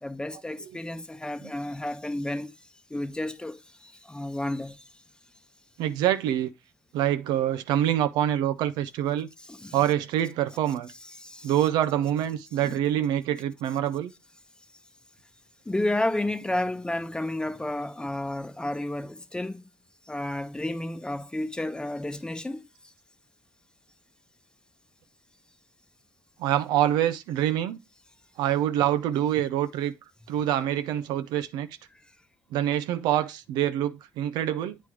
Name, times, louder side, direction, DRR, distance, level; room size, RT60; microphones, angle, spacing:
voice 1, 0.0-2.5 2.9-4.9 9.5-9.8 11.0-11.5 12.6-12.8 15.6-19.6 20.1-22.6, left 1 dB, 10° left, 0.8 m, -31 dB
voice 2, 5.8-6.5 6.9-9.3 9.7-10.9 11.4-14.1 26.4-27.8 28.4-29.9 30.3-31.7 32.5-34.8, right 11 dB, 90° right, 0.5 m, -25 dB
8.5 x 3.1 x 4.8 m
supercardioid pair, 70°, 7 cm